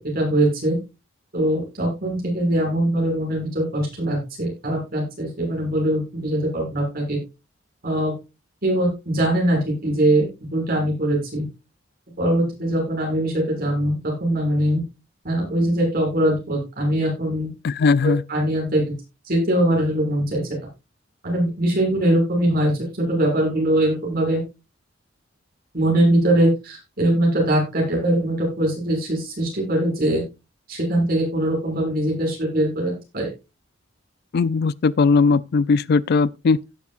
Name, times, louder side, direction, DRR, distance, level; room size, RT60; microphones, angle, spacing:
voice 1, 0.1-0.8 1.3-7.2 7.8-8.1 8.6-10.2 10.5-11.4 12.2-14.8 15.2-17.5 18.0-18.8 19.2-20.4 21.2-24.4 25.7-30.2 30.7-33.3, right 1 dB, 50° right, 6.6 m, -22 dB
voice 2, 17.6-18.2 34.3-36.6, left 4 dB, 55° left, 0.4 m, -18 dB
17.0 x 7.2 x 2.5 m
head